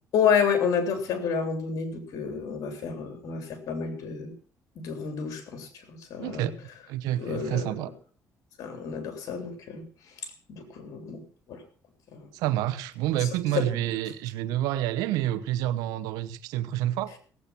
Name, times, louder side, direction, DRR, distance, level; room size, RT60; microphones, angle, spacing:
voice 1, 0.1-4.3 4.8-5.7 6.1-6.5 7.2-7.7 8.6-9.8 10.5-11.2 11.5-11.6 12.1-12.3 13.6-13.7, left 6 dB, 70° left, 3.5 m, -29 dB
voice 2, 6.2-6.5 6.9-7.9 12.3-17.2, right 13 dB, 90° right, 1.0 m, -28 dB
17.0 x 8.3 x 5.9 m
cardioid pair, 85°, 6 cm